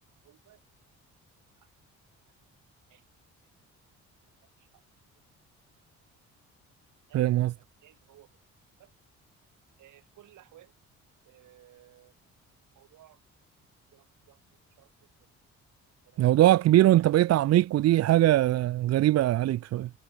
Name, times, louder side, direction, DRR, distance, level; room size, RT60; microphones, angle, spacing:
voice 1, 0.2-0.6 1.1-1.2 1.6-1.7 2.3-3.3 4.4-4.8 5.1-5.4 7.1-7.3 7.8-8.4 8.8-8.9 9.8-10.8 11.2-12.1 12.6-13.2 13.9-15.3 16.1-17.4 17.7-17.8, right 13 dB, 80° right, 5.2 m, -58 dB
voice 2, 7.1-7.5 16.2-19.9, right 14 dB, 55° right, 0.4 m, -21 dB
cardioid pair, 90°, 30 cm